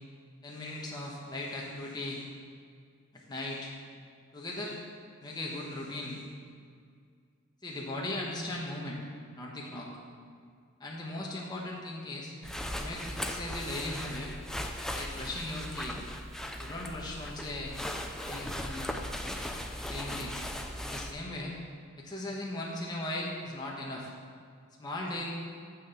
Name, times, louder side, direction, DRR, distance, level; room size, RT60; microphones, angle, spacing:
voice 1, 0.4-2.2 3.1-3.7 4.3-4.8 5.2-6.2 7.6-9.0 9.3-9.9 10.8-12.3 12.7-14.3 14.9-16.0 16.6-17.8 18.2-18.9 19.3-20.4 20.8-21.5 22.0-24.1 24.8-25.3, left 1 dB, 20° left, -4 dB, 1.2 m, -38 dB
sound 1, 12.4-21.1, left 1 dB, ahead, 0.5 m, -38 dB
7.7 x 6.4 x 6.8 m, 2.1 s
head